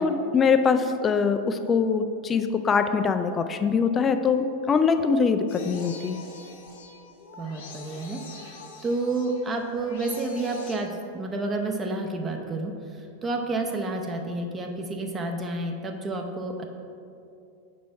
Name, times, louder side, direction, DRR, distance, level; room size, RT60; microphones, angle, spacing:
voice 1, 0.0-6.2, left 5 dB, 20° left, 9 dB, 0.4 m, -23 dB
sound 1, 5.5-10.8, left 3 dB, 55° left, 1.1 m, -45 dB
voice 2, 7.4-8.5 8.8-12.7 13.2-16.7, right 2 dB, 20° right, 3 dB, 0.6 m, -30 dB
6.3 x 5.1 x 4.5 m, 2.6 s
figure-of-eight pair, 90°, 0 cm